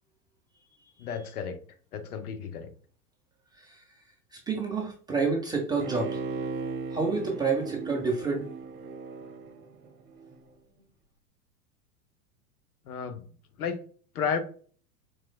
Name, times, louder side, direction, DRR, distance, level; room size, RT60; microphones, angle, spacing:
voice 1, 1.0-1.6 1.9-2.7 12.9-13.2 13.6-13.8 14.1-14.4, left 6 dB, 70° left, 0.8 m, -32 dB
voice 2, 3.5-3.8 4.3-6.2 6.9-8.5, right 4 dB, 10° right, 0.4 m, -29 dB
Bowed string instrument, 5.8-10.4 10.8-10.9, right 4 dB, 40° right, 0.9 m, -37 dB
4.4 x 3.0 x 2.2 m
figure-of-eight pair, 95°, 46 cm